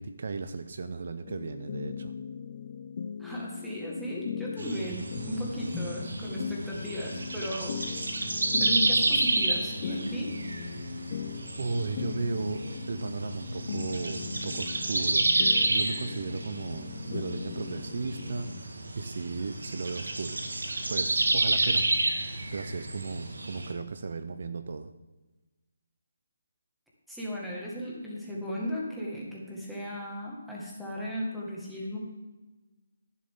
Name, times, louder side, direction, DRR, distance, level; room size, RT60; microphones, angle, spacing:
voice 1, 0.0-2.1 11.6-12.6 12.9-20.4 20.9-21.8 22.2-24.9, right 4 dB, 55° right, 10 dB, 0.6 m, -36 dB
sound 1, 1.2-18.6, left 7 dB, 40° left, 0.5 m, -39 dB
voice 2, 3.2-7.8 8.6-10.3 27.1-32.0, equal, ahead, -5 dB, 1.8 m, -35 dB
sound 2, 4.6-23.7, right 2 dB, 90° right, 1.7 m, -30 dB
11.0 x 10.5 x 3.7 m, 1.1 s
hypercardioid pair, 170°, 0 cm